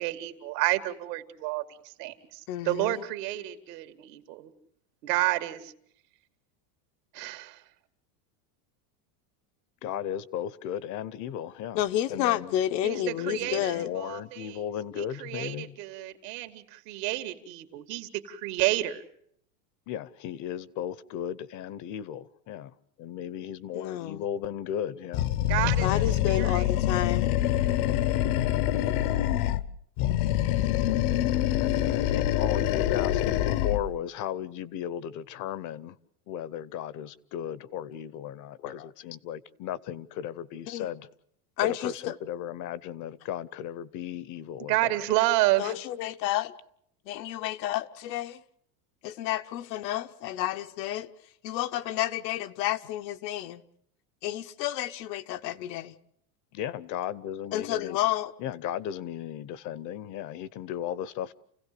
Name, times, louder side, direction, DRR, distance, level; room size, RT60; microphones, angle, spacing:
voice 1, 0.0-4.5 5.0-5.7 7.1-7.6 12.8-14.6 15.0-19.0 25.5-26.7 44.7-45.7, right 17 dB, 75° right, 2.2 m, -30 dB
voice 2, 2.5-3.0 11.7-13.9 23.7-24.3 25.8-27.3 38.6-38.9 40.7-40.9 41.6-42.1 45.6-46.5 47.0-48.4 49.0-51.1 51.4-53.6 54.2-56.0 57.5-58.3, left 13 dB, 85° left, 1.3 m, -30 dB
voice 3, 9.8-11.8 12.1-12.6 13.1-15.7 19.9-25.3 31.8-36.0 36.3-41.1 41.6-44.9 56.5-58.0 58.4-61.3, left 10 dB, 40° left, 0.8 m, -36 dB
Animal, 25.1-29.7 30.0-33.9, left 12 dB, 65° left, 1.0 m, -25 dB
29.5 x 16.5 x 6.8 m
supercardioid pair, 150°, 48 cm